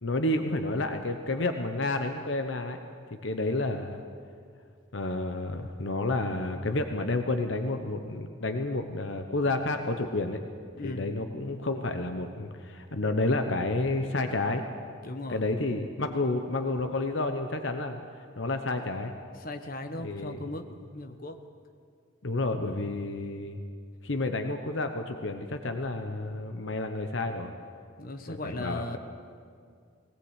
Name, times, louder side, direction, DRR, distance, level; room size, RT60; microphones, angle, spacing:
voice 1, 0.0-2.8 3.2-4.0 4.9-10.4 10.8-14.7 15.3-18.0 18.4-19.1 20.0-20.4 22.2-23.6 24.0-27.5 28.3-29.0, left 2 dB, 60° left, 6 dB, 1.0 m, -30 dB
voice 2, 15.0-15.4 19.4-21.4 28.0-29.0, left 2 dB, 45° left, 6 dB, 1.2 m, -37 dB
19.5 x 18.0 x 8.2 m, 2.2 s
head